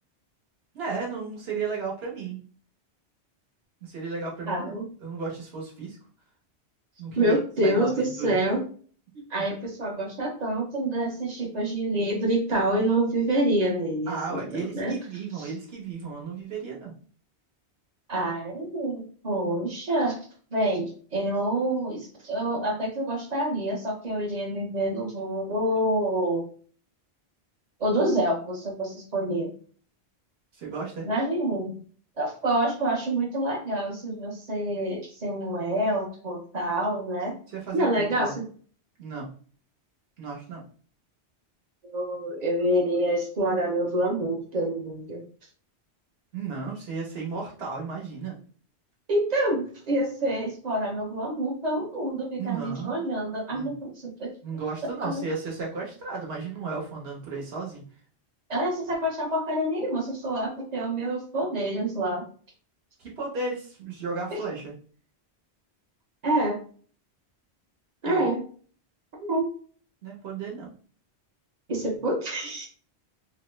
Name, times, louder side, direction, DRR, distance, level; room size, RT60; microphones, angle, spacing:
voice 1, 0.7-2.4 3.8-6.0 7.0-7.3 7.6-8.4 14.1-16.9 30.5-31.1 37.5-38.3 39.0-39.3 40.2-40.6 46.3-48.4 52.4-53.0 53.5-53.7 54.4-57.9 63.0-64.7 68.0-68.3 70.0-70.7, right 4 dB, 65° right, -2 dB, 1.2 m, -34 dB
voice 2, 4.5-4.9 7.2-8.6 9.1-15.0 15.4-15.5 18.1-20.2 20.5-26.5 27.8-29.5 31.0-31.8 32.2-37.4 37.7-38.3 41.8-45.2 49.1-54.3 55.0-55.3 58.5-62.2 64.3-64.4 66.2-66.6 68.0-68.4 69.2-69.5 71.7-72.7, right 1 dB, 45° right, 0 dB, 0.8 m, -27 dB
2.9 x 2.0 x 3.1 m, 0.43 s
omnidirectional pair, 1.1 m